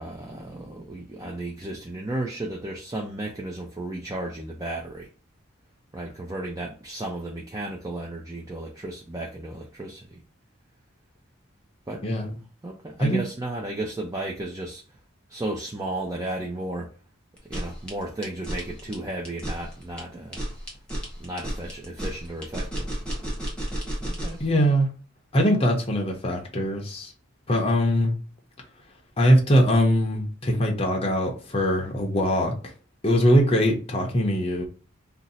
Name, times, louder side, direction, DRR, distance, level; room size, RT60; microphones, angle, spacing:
voice 1, 0.0-5.1 5.9-10.2 11.9-12.0 12.6-14.8 15.3-16.9 17.5-20.4 21.2-22.9 23.2-23.4 24.0-24.4, right 1 dB, 15° right, 0.4 m, -34 dB
voice 2, 12.0-12.3 13.0-13.2 24.4-24.9 25.3-27.1 27.5-28.2 29.2-32.5 33.0-34.7, equal, 30° left, 0.6 m, -22 dB
sound 1, 17.4-24.5, equal, 5° left, 0.9 m, -32 dB
2.6 x 2.0 x 3.9 m
head